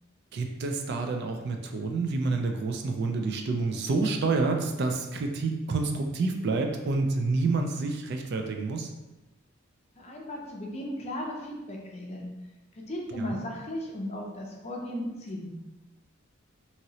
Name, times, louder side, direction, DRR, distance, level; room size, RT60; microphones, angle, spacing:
voice 1, 0.3-8.9 13.2-13.4, right 3 dB, 55° right, 4 dB, 0.3 m, -28 dB
voice 2, 10.0-12.3 12.7-15.5, left 1 dB, 30° left, -1 dB, 0.5 m, -36 dB
2.9 x 2.7 x 2.7 m, 1.1 s
head